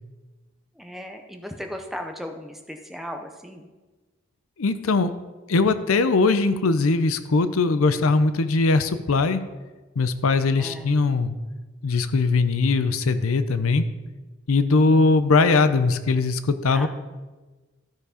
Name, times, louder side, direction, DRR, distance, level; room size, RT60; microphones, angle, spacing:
voice 1, 0.8-3.7 10.6-10.9 16.7-16.9, equal, ahead, 4 dB, 0.6 m, -36 dB
voice 2, 4.6-5.1 5.5-9.4 10.0-11.3 11.8-13.8 14.5-16.9, left 3 dB, 90° left, 11 dB, 0.6 m, -20 dB
13.5 x 4.7 x 5.0 m, 1.2 s
head